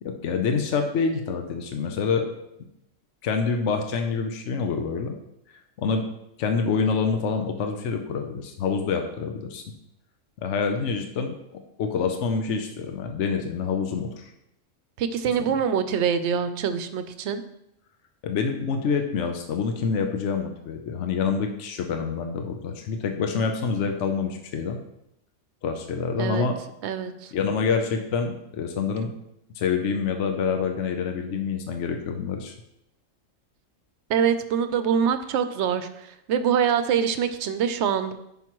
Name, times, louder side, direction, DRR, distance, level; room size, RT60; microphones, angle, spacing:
voice 1, 0.0-2.3 3.2-5.2 5.8-6.0 6.4-9.6 10.4-11.3 11.8-14.3 18.2-24.8 25.6-26.5 27.3-29.1 29.6-32.5, left 5 dB, 70° left, 5 dB, 1.0 m, -26 dB
voice 2, 15.0-17.4 26.2-26.5 26.8-27.3 34.1-38.1, right 7 dB, 65° right, 10 dB, 0.9 m, -24 dB
10.5 x 5.6 x 3.0 m, 0.82 s
omnidirectional pair, 1.3 m